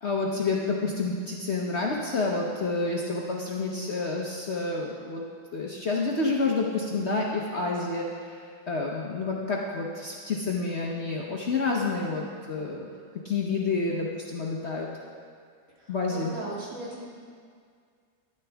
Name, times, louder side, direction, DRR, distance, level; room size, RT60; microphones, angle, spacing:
voice 1, 0.0-5.2 5.5-12.9 13.2-14.9 15.9-16.3, left 3 dB, 50° left, -2 dB, 1.0 m, -29 dB
voice 2, 15.8-17.0, right 1 dB, 50° right, -6 dB, 2.6 m, -38 dB
12.5 x 10.5 x 3.5 m, 2.1 s
omnidirectional pair, 1.9 m